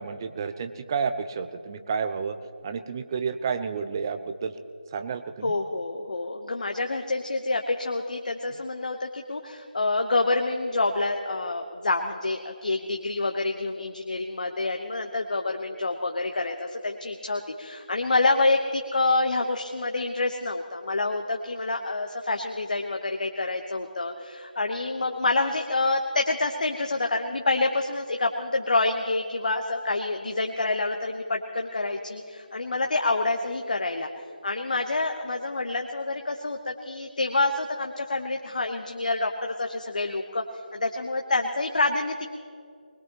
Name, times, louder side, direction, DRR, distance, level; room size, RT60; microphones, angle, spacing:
voice 1, 0.0-2.4 2.6-4.5 4.9-5.5, right 5 dB, 25° right, 9 dB, 0.6 m, -30 dB
voice 2, 5.4-34.1 34.4-40.4 40.7-42.3, left 2 dB, 55° left, 4 dB, 1.0 m, -27 dB
22.5 x 21.0 x 3.0 m, 2.4 s
figure-of-eight pair, 160°, 5 cm